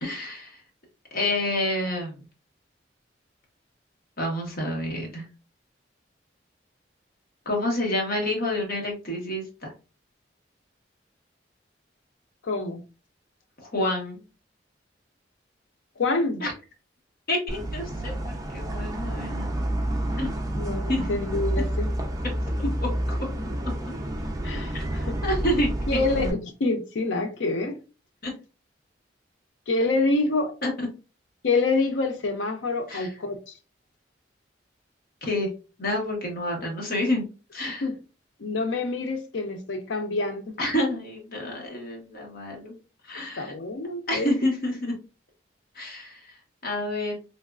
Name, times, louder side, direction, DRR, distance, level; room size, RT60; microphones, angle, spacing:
voice 1, 0.0-0.6 1.1-2.2 4.2-5.3 7.4-9.7 13.7-14.2 16.4-16.5 17.3-19.5 20.2-20.3 20.9-21.1 22.6-22.9 24.7-24.8 25.2-26.4 28.2-28.3 30.6-30.9 32.9-33.1 35.2-35.5 35.8-37.2 37.5-37.9 40.6-42.7 43.0-43.5 44.1-44.9 45.7-46.3 46.6-47.2, left 1 dB, 55° left, 1.1 m, -28 dB
voice 2, 12.4-12.8 16.0-16.4 20.6-21.9 22.6-22.7 24.4-25.2 25.9-27.8 29.7-30.5 31.4-33.5 37.8-37.9 38.4-40.6 43.4-44.3, left 3 dB, 85° left, 0.6 m, -27 dB
sound 1, 17.5-26.3, right 1 dB, 20° right, 0.5 m, -29 dB
3.3 x 2.3 x 2.3 m
head